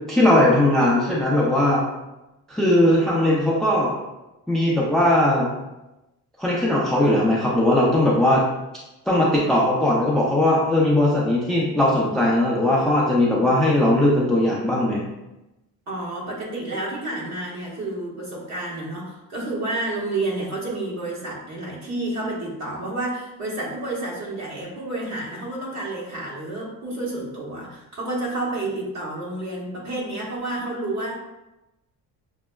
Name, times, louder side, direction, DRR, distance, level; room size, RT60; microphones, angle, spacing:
voice 1, 0.1-1.8 2.5-3.9 4.5-5.5 6.4-8.4 9.1-15.1, left 1 dB, ahead, -5 dB, 0.4 m, -19 dB
voice 2, 15.9-31.1, right 2 dB, 45° right, -5 dB, 1.3 m, -30 dB
6.0 x 2.0 x 2.2 m, 0.97 s
cardioid pair, 130°, 38 cm